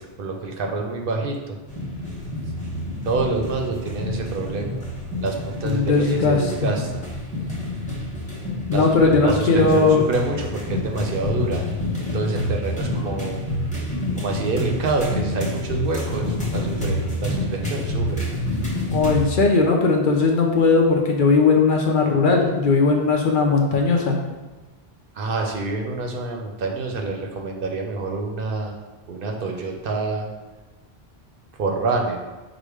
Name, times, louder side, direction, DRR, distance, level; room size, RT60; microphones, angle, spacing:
voice 1, 0.0-1.6 3.0-4.8 5.2-7.1 8.7-11.7 12.0-13.4 14.2-18.2 25.1-28.7 29.1-30.2 31.6-32.2, right 3 dB, 65° right, 2 dB, 0.7 m, -27 dB
sound 1, 1.7-19.3, left 1 dB, 5° left, 0.9 m, -28 dB
voice 2, 5.6-6.7 8.7-10.0 18.9-24.2, left 4 dB, 60° left, 1 dB, 0.7 m, -18 dB
4.9 x 2.1 x 4.7 m, 1.2 s
omnidirectional pair, 1.1 m